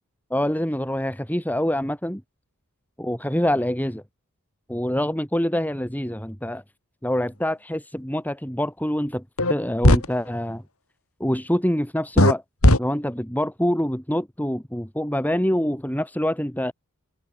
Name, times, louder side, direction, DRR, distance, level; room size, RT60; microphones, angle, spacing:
voice 1, 0.3-2.2 3.0-4.0 4.7-6.6 7.0-9.2 9.5-10.6 11.2-12.4 12.8-16.7, equal, 10° left, 5.6 m, -25 dB
sound 1, 9.4-9.5 9.8-10.1 12.2-12.3 12.6-12.8, left 1 dB, 75° left, 4.6 m, -14 dB
head